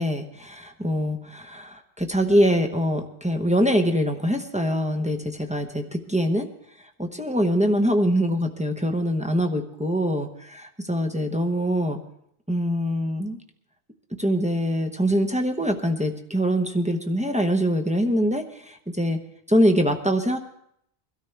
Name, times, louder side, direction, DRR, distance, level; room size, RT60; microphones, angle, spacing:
voice 1, 0.0-6.5 7.0-12.0 12.5-13.4 14.2-19.2 19.5-20.4, equal, 5° right, 4 dB, 0.9 m, -24 dB
22.5 x 13.0 x 3.4 m, 0.73 s
omnidirectional pair, 1.1 m